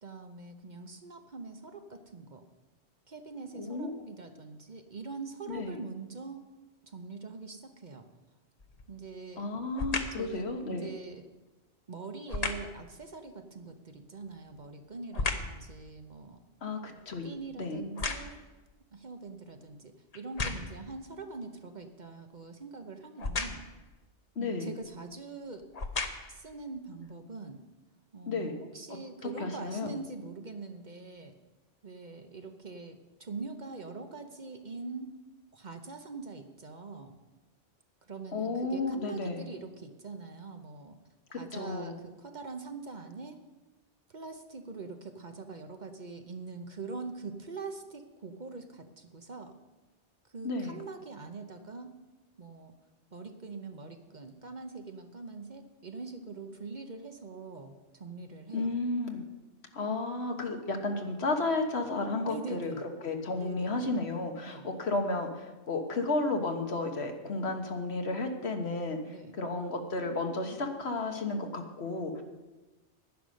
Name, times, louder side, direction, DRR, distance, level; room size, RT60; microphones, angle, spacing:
voice 1, 0.0-2.5 3.1-6.4 6.8-8.1 8.9-9.5 10.1-11.3 11.9-16.4 17.2-18.5 18.9-23.6 24.4-25.7 26.3-27.6 28.1-31.3 31.8-35.1 35.5-37.2 38.0-41.0 41.3-43.4 44.1-49.6 50.3-51.9 52.4-52.7 53.1-58.8 62.2-62.9 63.4-63.9 64.5-64.7 69.0-69.4, right 4 dB, 45° right, 6 dB, 1.0 m, -43 dB
voice 2, 3.5-3.9 5.5-5.8 9.4-10.9 16.6-17.3 17.6-17.8 24.3-24.7 28.3-28.5 29.4-29.9 38.3-39.5 41.3-41.9 50.4-50.8 58.5-59.2 59.7-69.0 69.4-72.2, left 3 dB, 65° left, 5 dB, 1.5 m, -33 dB
sound 1, 8.6-9.0 9.7-10.3 12.3-12.8 14.2-15.6 16.1-18.6 19.3-19.4 20.1-20.9 23.2-23.8 24.8-24.9 25.6-26.4 27.1-27.2, left 3 dB, 35° left, 0.9 m, -35 dB
11.0 x 10.5 x 6.4 m, 1.1 s
omnidirectional pair, 1.2 m